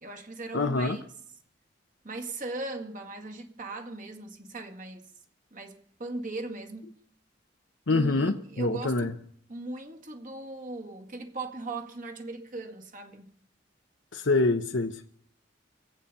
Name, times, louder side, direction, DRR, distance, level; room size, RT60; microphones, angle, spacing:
voice 1, 0.0-1.0 2.0-5.1 5.5-7.0 7.9-9.1 9.5-13.3, right 2 dB, 45° right, 1.8 m, -38 dB
voice 2, 0.5-1.0 7.9-9.1 14.1-15.0, left 3 dB, 80° left, 0.9 m, -26 dB
24.5 x 8.6 x 5.5 m
head